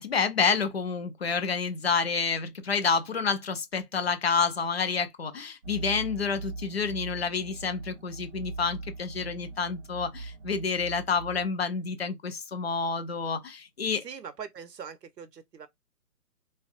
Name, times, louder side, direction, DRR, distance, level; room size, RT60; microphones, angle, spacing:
voice 1, 0.0-14.0, left 5 dB, 45° left, 0.5 m, -29 dB
sound 1, 5.6-11.5, right 3 dB, 40° right, 0.6 m, -41 dB
voice 2, 14.0-15.7, right 7 dB, 90° right, 0.9 m, -42 dB
3.2 x 2.3 x 2.5 m
hypercardioid pair, 155°, 47 cm